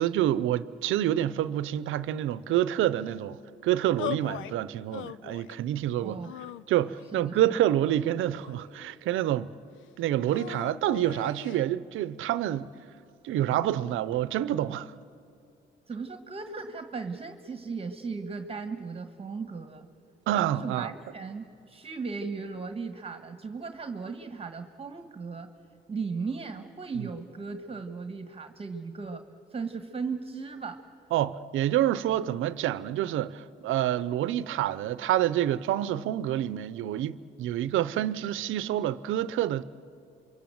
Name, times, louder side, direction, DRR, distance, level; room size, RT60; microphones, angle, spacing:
voice 1, 0.0-6.2 6.7-9.5 10.0-12.7 13.2-14.9 20.3-20.9 27.0-27.1 31.1-39.6, right 12 dB, 85° right, 0.8 m, -27 dB
sound 1, 4.0-4.6 4.9-5.6 6.2-7.1 7.9-8.9 10.3-11.6, left 13 dB, 80° left, 0.6 m, -40 dB
voice 2, 6.0-6.3 7.1-7.6 15.9-19.9 20.6-25.5 25.9-29.2 29.5-30.8, right 4 dB, 30° right, 1.6 m, -37 dB
28.0 x 24.0 x 7.8 m
cardioid pair, 90°, 20 cm